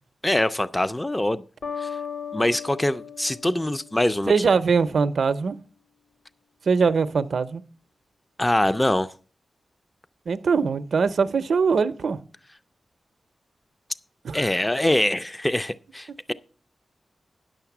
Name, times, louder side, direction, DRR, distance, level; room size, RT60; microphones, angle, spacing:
voice 1, 0.2-1.4 1.8-2.0 2.3-4.3 8.4-9.1 14.3-16.3, left 1 dB, 15° left, 0.4 m, -24 dB
sound 1, 1.6-4.4, left 6 dB, 70° left, 1.2 m, -36 dB
voice 2, 4.3-5.6 6.7-7.6 10.3-12.2 14.2-14.5, right 5 dB, 75° right, 0.5 m, -22 dB
10.0 x 6.5 x 5.9 m
wide cardioid pair, 85°, 0 cm